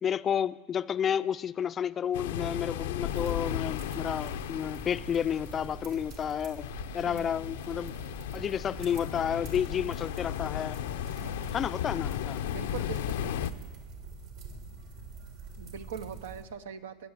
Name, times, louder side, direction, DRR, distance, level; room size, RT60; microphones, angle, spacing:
voice 1, 0.0-8.0 8.3-10.8 11.5-12.4, left 8 dB, 30° left, 16 dB, 0.4 m, -31 dB
sound 1, 2.1-13.5, left 11 dB, 85° left, 0.5 m, -36 dB
sound 2, 3.1-16.4, right 5 dB, 65° right, 3.1 m, -45 dB
voice 2, 7.0-7.4 11.2-11.6 12.4-13.5 15.6-17.1, right 7 dB, 90° right, 11 dB, 0.8 m, -42 dB
19.0 x 7.4 x 8.1 m, 1.4 s
supercardioid pair, 120°, 0 cm